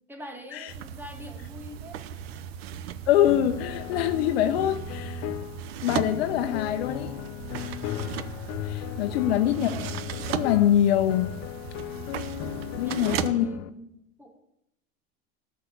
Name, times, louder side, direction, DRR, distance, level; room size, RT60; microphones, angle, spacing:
voice 1, 0.1-2.0 9.0-9.5 12.8-14.4, right 1 dB, 5° right, 4 dB, 2.2 m, -43 dB
sound 1, 0.7-13.3, right 9 dB, 85° right, 0.9 m, -37 dB
voice 2, 3.1-5.3 5.8-7.1 8.6-9.8 10.3-11.3 12.7-13.5, left 11 dB, 85° left, 7 dB, 0.9 m, -24 dB
sound 2, 3.3-13.7, left 14 dB, 50° left, 0.7 m, -36 dB
13.5 x 6.7 x 8.5 m, 0.81 s
supercardioid pair, 120°, 30 cm